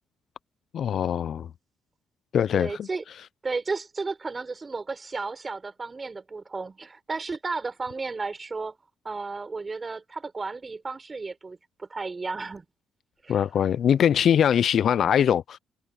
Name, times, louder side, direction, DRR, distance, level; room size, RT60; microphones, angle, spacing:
voice 1, 0.7-1.5 2.3-2.9 13.3-15.6, left 9 dB, 60° left, 0.3 m, -22 dB
voice 2, 2.5-3.0 3.4-8.7 9.0-12.6 13.2-13.4, right 4 dB, 30° right, 4.5 m, -33 dB
cardioid pair, 90°, 0 cm